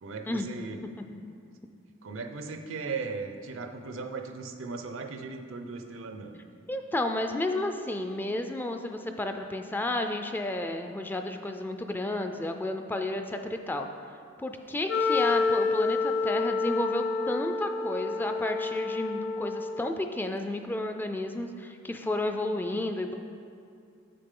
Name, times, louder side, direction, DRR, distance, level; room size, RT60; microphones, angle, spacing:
voice 1, 0.0-0.8 2.0-6.3, right 4 dB, 75° right, 5 dB, 0.6 m, -37 dB
voice 2, 6.7-13.9 14.4-23.2, left 1 dB, 10° left, 5 dB, 0.3 m, -32 dB
Wind instrument woodwind instrument, 14.9-20.0, left 4 dB, 55° left, 0.6 m, -28 dB
7.2 x 6.8 x 3.7 m, 2.5 s
head